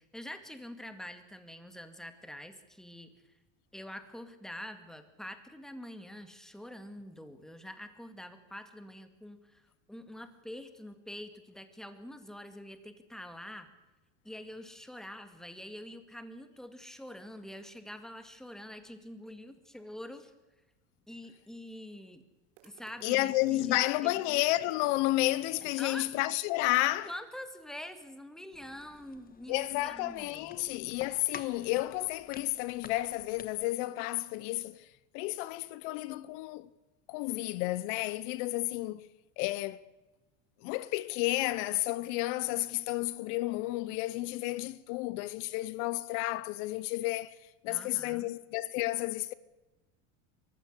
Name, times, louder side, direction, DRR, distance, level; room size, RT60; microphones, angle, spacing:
voice 1, 0.0-3.1 3.7-13.7 14.2-20.3 21.1-22.2 22.6-24.4 25.8-26.1 27.1-30.9 47.7-48.3, left 1 dB, ahead, 2.2 m, -46 dB
sound 1, 22.6-25.6, right 11 dB, 85° right, 1.9 m, -58 dB
voice 2, 23.0-27.1 29.5-34.9 35.1-36.7 37.1-39.1 39.4-39.8 40.6-47.4 47.6-49.3, left 18 dB, 65° left, 0.9 m, -31 dB
sound 2, 28.5-33.7, left 6 dB, 25° left, 1.4 m, -50 dB
23.5 x 15.5 x 8.1 m
supercardioid pair, 125°, 37 cm